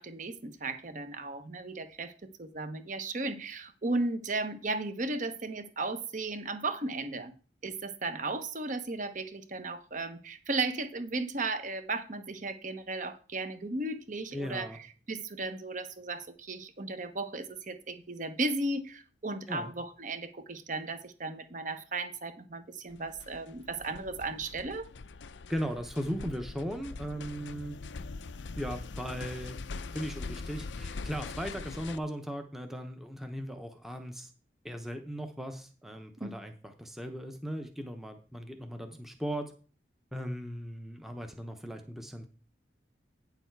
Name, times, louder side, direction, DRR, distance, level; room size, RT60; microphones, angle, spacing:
voice 1, 0.0-2.1 2.4-7.3 7.6-14.7 15.1-24.9 36.2-36.3, right 2 dB, 45° right, 1.0 m, -35 dB
voice 2, 14.3-14.8 19.5-19.7 25.5-27.8 28.6-29.6 29.9-34.3 34.6-39.5 40.1-42.3, equal, ahead, 0.8 m, -37 dB
sound 1, 22.9-32.0, left 3 dB, 75° left, 0.5 m, -42 dB
9.3 x 7.0 x 4.6 m
head